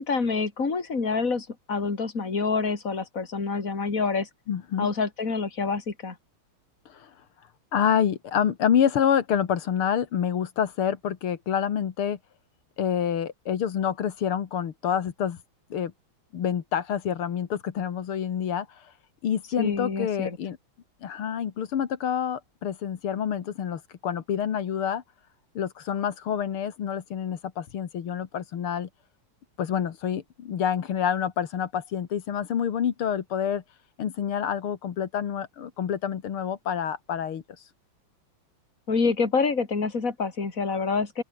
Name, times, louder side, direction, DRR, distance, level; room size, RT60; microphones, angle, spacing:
voice 1, 0.0-4.3 4.8-6.2 19.6-20.4 38.9-41.2, left 4 dB, 40° left, 3.6 m, -27 dB
voice 2, 4.5-4.9 6.9-7.1 7.7-12.2 12.8-15.4 15.7-15.9 16.3-18.9 19.2-20.6 21.0-25.0 25.6-28.9 29.6-33.6 34.0-37.7, left 8 dB, 85° left, 2.5 m, -27 dB
open air
omnidirectional pair, 2.3 m